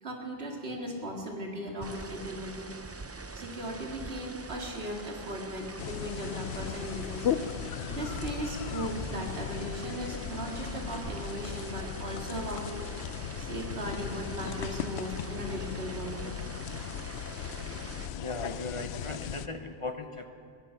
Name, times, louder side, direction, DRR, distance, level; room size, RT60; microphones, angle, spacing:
voice 1, 0.0-2.7 3.3-7.3 7.9-12.7 13.4-16.3, right 1 dB, 75° right, 1 dB, 2.3 m, -37 dB
sound 1, 1.8-18.1, right 3 dB, 25° right, 0.3 m, -44 dB
sound 2, 5.8-19.5, left 9 dB, 85° left, 0.9 m, -37 dB
voice 2, 18.1-20.3, left 3 dB, 35° left, 7 dB, 0.8 m, -37 dB
21.0 x 11.5 x 5.8 m, 2.3 s
omnidirectional pair, 1.1 m